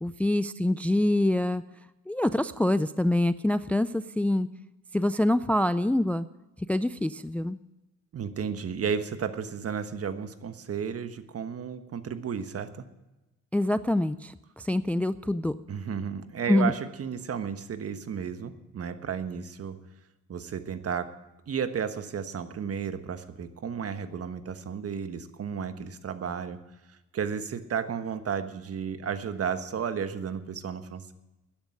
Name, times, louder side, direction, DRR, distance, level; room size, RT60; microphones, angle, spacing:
voice 1, 0.0-1.6 2.1-4.5 4.9-6.3 6.7-7.6 13.5-15.6 16.5-16.7, left 1 dB, 5° left, 14 dB, 0.4 m, -25 dB
voice 2, 8.1-12.8 15.7-19.8 20.3-21.1 21.5-26.6 26.9-31.1, right 7 dB, 50° right, 10 dB, 1.4 m, -33 dB
12.5 x 10.5 x 7.7 m, 0.99 s
cardioid pair, 90°, 30 cm